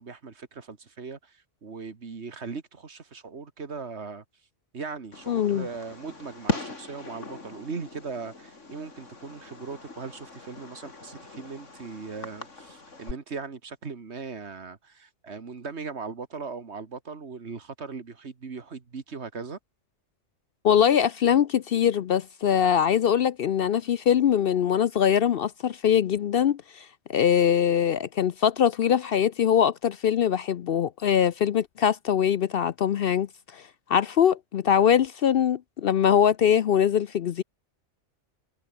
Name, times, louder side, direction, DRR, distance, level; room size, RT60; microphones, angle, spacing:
voice 1, 0.0-4.2 4.7-19.6, right 5 dB, 65° right, 2.0 m, -39 dB
Fireworks, 5.1-13.1, left 3 dB, 80° left, 3.5 m, -39 dB
voice 2, 5.3-5.7 20.6-37.4, left 9 dB, 60° left, 0.7 m, -22 dB
omnidirectional pair, 1.2 m